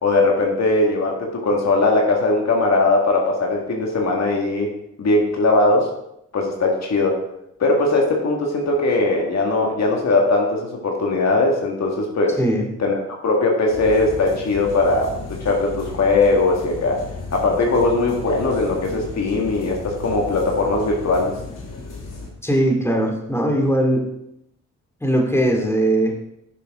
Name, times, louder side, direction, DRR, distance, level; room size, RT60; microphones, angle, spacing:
voice 1, 0.0-5.9 6.3-7.2 7.6-12.4 12.8-17.0 17.3-21.3, left 2 dB, 55° left, 0 dB, 1.9 m, -20 dB
voice 2, 12.4-12.7 22.4-24.0 25.0-26.1, right 1 dB, 10° left, 0 dB, 2.6 m, -19 dB
sound 1, 13.7-22.3, left 3 dB, 80° left, 2.3 m, -34 dB
10.0 x 6.9 x 3.7 m, 0.80 s
supercardioid pair, 50°, 31 cm